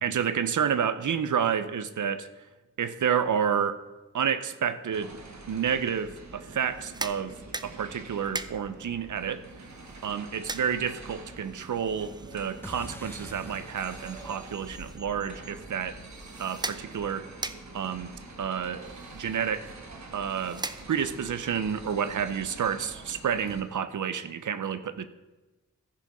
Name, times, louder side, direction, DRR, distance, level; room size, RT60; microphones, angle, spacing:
voice 1, 0.0-2.3 2.8-3.8 4.1-5.1 5.5-9.4 10.0-16.0 16.4-17.3 17.7-18.1 18.4-18.8 19.1-19.7 20.1-20.6 20.9-25.0, right 7 dB, 80° right, 12 dB, 0.7 m, -29 dB
sound 1, 4.9-23.6, right 2 dB, 65° right, 1.5 m, -46 dB
sound 2, 6.6-21.3, right 3 dB, 15° right, 0.4 m, -42 dB
sound 3, 12.6-17.5, left 1 dB, 5° left, 1.0 m, -47 dB
14.5 x 5.1 x 5.4 m, 1.1 s
wide cardioid pair, 140°, 30 cm